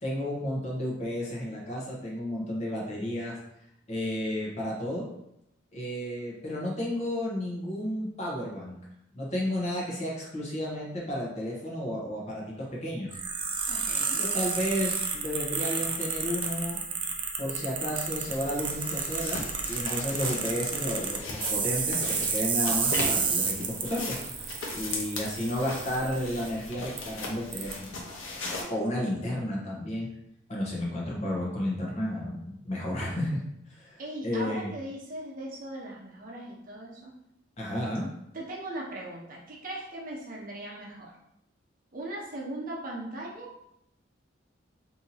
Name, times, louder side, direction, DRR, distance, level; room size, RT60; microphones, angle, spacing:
voice 1, 0.0-3.4 3.9-5.1 5.7-8.7 9.1-13.1 14.2-16.8 17.4-24.2 24.7-28.0 28.7-30.1 30.5-33.4 33.7-34.7 37.6-38.1, left 1 dB, 35° left, -3 dB, 0.8 m, -32 dB
sound 1, 13.1-26.5 27.0-27.1 27.5-27.7, right 5 dB, 25° right, 0.3 m, -31 dB
voice 2, 13.7-14.2 34.0-37.1 38.3-41.1 41.9-43.5, right 1 dB, 45° right, -3 dB, 0.7 m, -39 dB
sound 2, 15.8-15.9 16.4-16.5 18.2-28.6, left 2 dB, 85° left, 0.8 m, -38 dB
2.8 x 2.7 x 3.9 m, 0.80 s
head